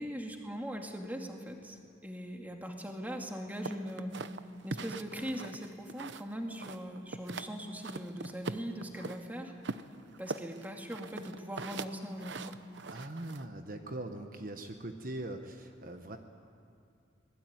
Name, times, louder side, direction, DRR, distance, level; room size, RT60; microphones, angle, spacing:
voice 1, 0.0-4.2 4.6-9.5 10.2-12.6, equal, 10° right, 2 dB, 2.3 m, -40 dB
sound 1, 3.6-6.3 6.6-7.5 7.8-9.2 9.6-13.4, right 3 dB, 70° right, 0.9 m, -41 dB
voice 2, 12.9-16.2, right 1 dB, 50° right, 5 dB, 1.2 m, -41 dB
25.0 x 20.5 x 9.4 m, 2.4 s
head